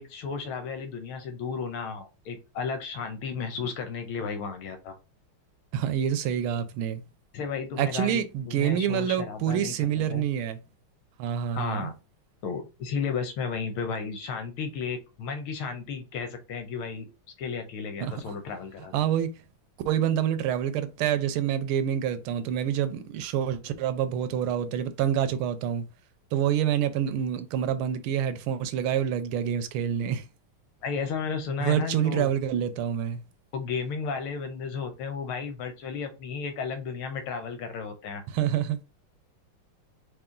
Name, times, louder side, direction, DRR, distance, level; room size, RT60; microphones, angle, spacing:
voice 1, 0.0-5.0 7.3-10.2 11.5-11.9 12.4-17.1 17.4-19.0 30.8-32.3 33.5-38.2, left 5 dB, 80° left, 1.7 m, -33 dB
voice 2, 5.7-7.0 7.8-10.6 11.2-11.9 18.0-18.1 18.9-19.4 19.8-25.8 26.3-30.3 31.6-33.2 38.3-38.8, right 9 dB, 80° right, 1.5 m, -27 dB
4.8 x 2.7 x 3.7 m
omnidirectional pair, 2.3 m